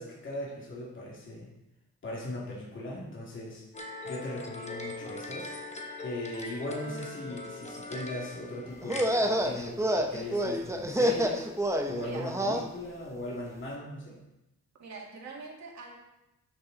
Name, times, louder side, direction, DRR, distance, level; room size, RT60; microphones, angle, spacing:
voice 1, 0.0-1.5 2.0-3.6 4.0-5.6 6.0-11.5 11.9-14.2, left 1 dB, 40° left, -4 dB, 2.6 m, -39 dB
sound 1, 3.7-9.1, left 2 dB, 20° left, 1.2 m, -40 dB
sound 2, 8.8-12.7, equal, 10° right, 0.8 m, -28 dB
voice 2, 12.0-12.3 14.8-16.0, right 4 dB, 65° right, 0 dB, 2.2 m, -45 dB
12.5 x 6.7 x 4.0 m, 0.93 s
wide cardioid pair, 150°, 30 cm